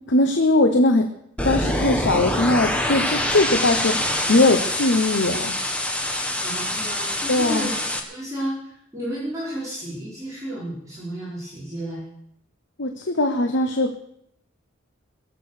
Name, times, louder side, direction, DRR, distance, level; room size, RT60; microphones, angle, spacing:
voice 1, 0.1-1.1 1.4-5.5 7.3-7.7 12.8-14.1, left 2 dB, 60° left, 6 dB, 1.0 m, -20 dB
sound 1, 1.4-8.0, left 1 dB, 5° left, 1.6 m, -25 dB
voice 2, 6.4-12.0, equal, 15° right, -8 dB, 4.7 m, -32 dB
21.5 x 7.8 x 6.6 m, 0.75 s
head